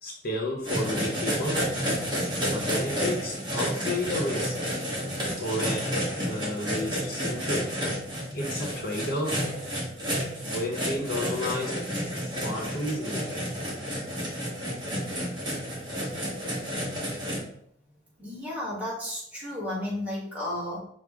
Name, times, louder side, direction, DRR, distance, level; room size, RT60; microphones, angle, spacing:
voice 1, 0.0-1.7 2.5-4.7 5.4-6.0 6.2-7.8 8.3-9.4 10.4-11.8 12.2-13.3, left 1 dB, 55° left, -2 dB, 0.8 m, -32 dB
sound 1, 0.6-17.4, equal, 25° right, 1.2 m, -30 dB
voice 2, 18.2-20.8, left 1 dB, 10° right, -6 dB, 1.4 m, -33 dB
6.1 x 2.1 x 3.5 m, 0.68 s
head